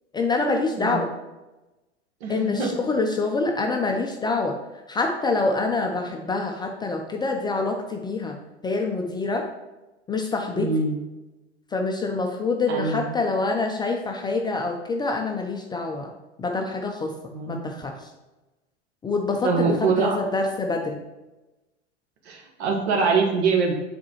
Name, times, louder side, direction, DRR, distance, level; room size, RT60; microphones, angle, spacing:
voice 1, 0.1-1.1 2.3-4.6 4.9-8.4 8.6-9.5 10.1-10.7 11.7-16.1 16.4-17.1 17.5-18.0 19.0-21.0, left 3 dB, 15° left, 2 dB, 0.4 m, -26 dB
voice 2, 0.7-1.0 2.2-2.7 10.5-11.0 12.7-13.1 17.3-17.8 19.4-20.2 22.2-23.7, right 4 dB, 65° right, 1 dB, 1.4 m, -24 dB
7.3 x 4.2 x 3.0 m, 1.1 s
hypercardioid pair, 95°, 35 cm